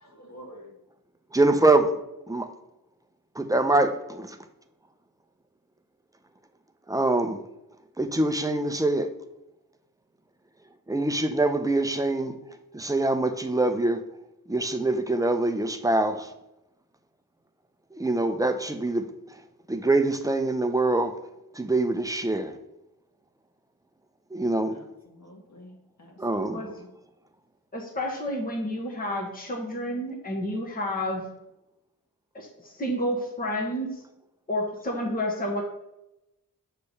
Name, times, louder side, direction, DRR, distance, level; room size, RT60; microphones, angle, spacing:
voice 1, 0.0-0.7 24.6-25.7 26.0-26.9, equal, 50° left, 1.5 m, -47 dB
voice 2, 1.3-2.0 2.3-2.5 3.4-4.3 6.9-7.4 8.0-9.1 10.9-12.4 12.7-14.0 14.5-16.3 17.9-19.1 19.7-21.1 21.5-22.6 24.3-24.8 26.2-26.7, right 2 dB, 10° right, 0.6 m, -24 dB
voice 3, 27.7-31.2 32.3-34.0 34.5-35.6, equal, 25° left, 1.2 m, -30 dB
6.7 x 3.3 x 5.4 m
wide cardioid pair, 80°, 34 cm